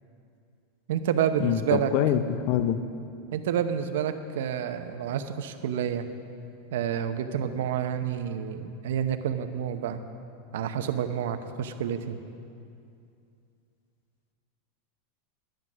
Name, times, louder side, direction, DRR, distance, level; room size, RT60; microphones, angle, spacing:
voice 1, 0.9-1.9 3.3-6.1 6.7-10.0 10.5-12.2, right 9 dB, 80° right, 9 dB, 0.8 m, -29 dB
voice 2, 1.4-2.8, left 10 dB, 45° left, 11 dB, 0.5 m, -25 dB
11.0 x 10.5 x 6.2 m, 2.5 s
supercardioid pair, 160°, 0 cm